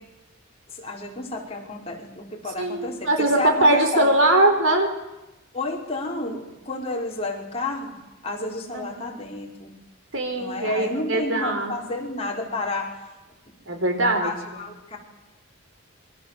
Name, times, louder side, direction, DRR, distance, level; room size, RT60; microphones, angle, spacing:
voice 1, 0.7-4.1 5.5-7.9 8.2-9.7 10.3-12.9 14.2-15.0, left 2 dB, 30° left, -1 dB, 5.2 m, -31 dB
voice 2, 2.6-5.0 8.7-9.1 10.1-11.8 13.7-14.6, right 1 dB, 65° right, 6 dB, 4.1 m, -21 dB
27.5 x 24.0 x 7.7 m, 1.0 s
head